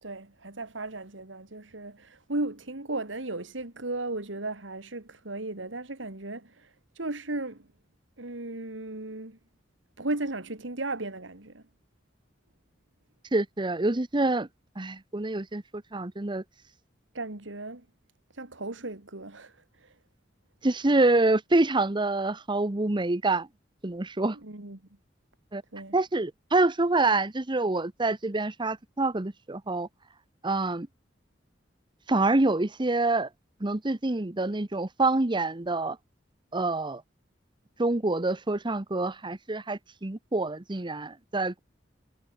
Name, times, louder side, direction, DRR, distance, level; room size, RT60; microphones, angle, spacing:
voice 1, 0.0-6.7 7.0-7.7 8.2-9.4 10.0-11.6 17.1-17.9 18.3-20.0 24.3-24.8 25.7-26.0, right 2 dB, 85° right, 2.5 m, -36 dB
voice 2, 13.3-14.5 14.8-15.6 15.9-16.4 20.6-23.5 23.8-24.4 25.5-25.6 25.9-29.9 30.4-30.9 32.1-33.3 33.6-36.0 36.5-37.0 37.8-41.6, right 2 dB, 25° right, 1.0 m, -26 dB
head